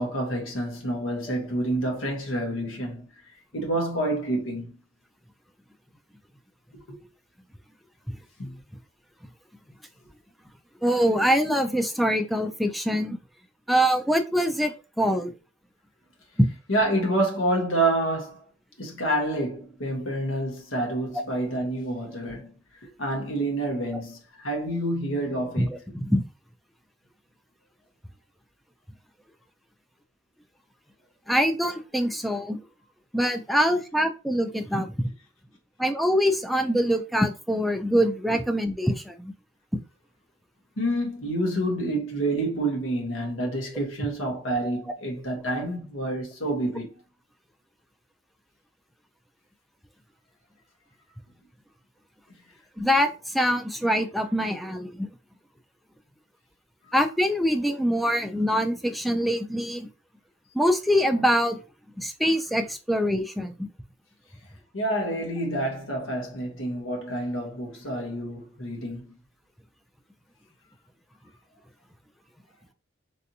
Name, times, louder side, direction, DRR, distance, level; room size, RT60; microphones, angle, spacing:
voice 1, 0.0-3.1 3.5-4.7 6.7-7.0 8.4-8.6 16.7-18.4 18.8-22.5 22.8-25.8 40.8-46.9 64.7-69.1, right 1 dB, 85° left, 1.2 m, -28 dB
voice 2, 10.8-13.2 13.7-15.3 16.4-16.5 25.6-25.7 25.9-26.2 31.3-32.6 33.1-34.9 35.8-39.3 52.8-55.1 56.9-59.9 60.5-61.6 62.0-63.7, equal, ahead, 0.3 m, -24 dB
3.3 x 2.8 x 2.7 m
head